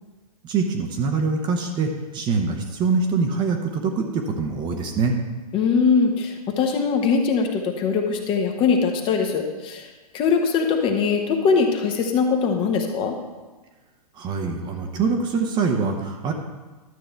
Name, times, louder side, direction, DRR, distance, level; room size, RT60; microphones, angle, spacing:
voice 1, 0.4-5.1 14.2-16.3, right 4 dB, 20° right, 4 dB, 0.9 m, -24 dB
voice 2, 5.5-9.9 10.1-13.2, left 5 dB, 25° left, 3 dB, 1.0 m, -21 dB
12.0 x 7.5 x 3.4 m, 1.2 s
figure-of-eight pair, 115°, 20 cm